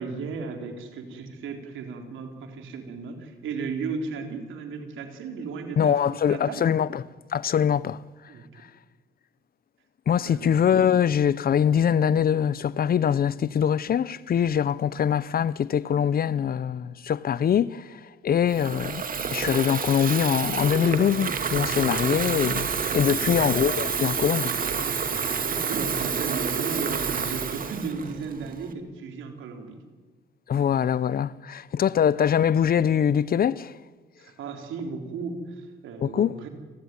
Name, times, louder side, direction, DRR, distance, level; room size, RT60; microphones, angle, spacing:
voice 1, 0.0-6.0 6.3-6.7 8.3-8.4 10.2-10.5 23.2-23.5 25.1-29.8 34.2-36.5, right 5 dB, 80° right, 3.9 m, -35 dB
voice 2, 5.8-7.0 7.3-8.0 10.1-19.0 19.3-22.7 22.9-24.5 30.5-33.8 36.0-36.3, left 8 dB, 50° left, 0.7 m, -23 dB
Water tap faucet / Fill (with liquid), 18.5-28.7, right 6 dB, 45° right, 2.4 m, -28 dB
29.0 x 13.5 x 9.8 m
cardioid pair, 90°, 20 cm